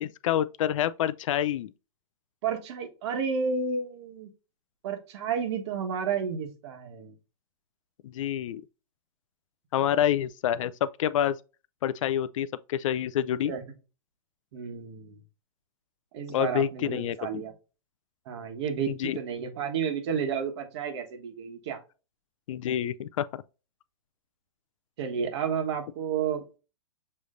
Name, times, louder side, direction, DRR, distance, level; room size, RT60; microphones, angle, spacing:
voice 1, 0.0-1.7 8.0-8.6 9.7-11.4 11.8-13.5 16.3-17.4 18.9-19.2 22.5-23.4, left 10 dB, 60° left, 0.4 m, -28 dB
voice 2, 2.4-4.3 4.8-7.1 9.8-9.9 13.4-13.6 14.5-15.2 16.1-17.5 18.3-21.8 25.0-26.6, right 6 dB, 50° right, 1.3 m, -31 dB
6.6 x 3.1 x 2.5 m
hypercardioid pair, 150°, 18 cm